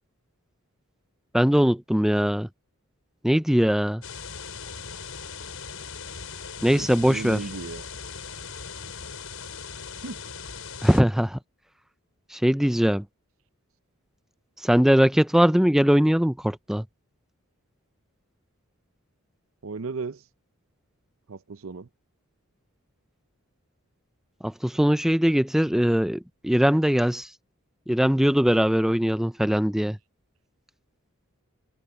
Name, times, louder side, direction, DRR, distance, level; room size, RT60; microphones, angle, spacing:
voice 1, 1.3-2.5 3.2-4.0 6.6-7.4 10.8-11.4 12.3-13.0 14.6-16.8 24.4-27.3 27.9-30.0, equal, ahead, 0.3 m, -21 dB
sound 1, 4.0-11.0, left 5 dB, 70° left, 5.3 m, -39 dB
voice 2, 6.7-7.9 10.0-10.2 19.6-20.2 21.3-21.9, right 4 dB, 70° right, 0.6 m, -35 dB
open air
head